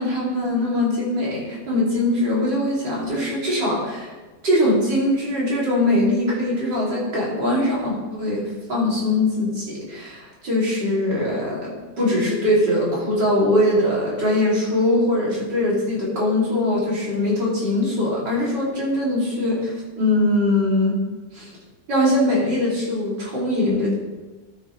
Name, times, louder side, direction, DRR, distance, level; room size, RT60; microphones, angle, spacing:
voice 1, 0.0-4.1 4.4-21.0 21.3-21.5 21.9-24.0, left 1 dB, 75° right, -6 dB, 3.5 m, -22 dB
13.0 x 6.8 x 3.2 m, 1.2 s
omnidirectional pair, 1.9 m